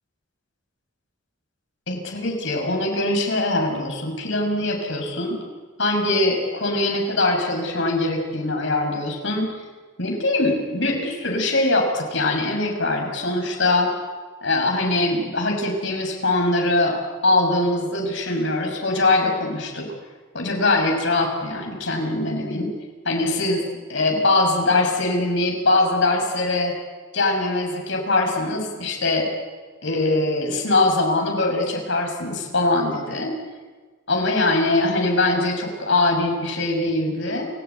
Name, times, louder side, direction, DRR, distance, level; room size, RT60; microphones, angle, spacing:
voice 1, 1.9-5.4 5.8-9.5 10.0-13.9 14.4-19.9 20.3-22.7 23.0-26.7 27.1-29.3 29.8-33.3 34.1-37.5, left 2 dB, 65° left, 2 dB, 6.3 m, -22 dB
29.0 x 16.0 x 9.4 m, 1.4 s
head